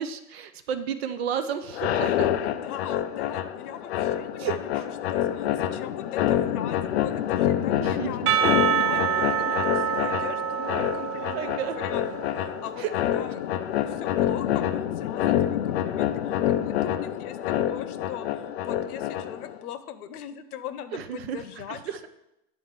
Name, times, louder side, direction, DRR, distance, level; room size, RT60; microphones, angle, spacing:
voice 1, 0.0-2.3 4.4-4.9 7.8-8.5 11.3-11.8 12.8-12.9 20.9-22.1, right 8 dB, 45° right, 10 dB, 0.5 m, -32 dB
sound 1, 1.7-19.6, left 11 dB, 45° left, 0.4 m, -27 dB
voice 2, 2.4-8.4 8.7-11.5 11.8-12.2 12.6-14.7 14.9-22.1, left 10 dB, 65° left, 12 dB, 0.9 m, -40 dB
Percussion / Church bell, 8.3-12.8, right 9 dB, 70° right, 0.8 m, -27 dB
9.5 x 4.3 x 7.4 m, 0.88 s
supercardioid pair, 170°, 47 cm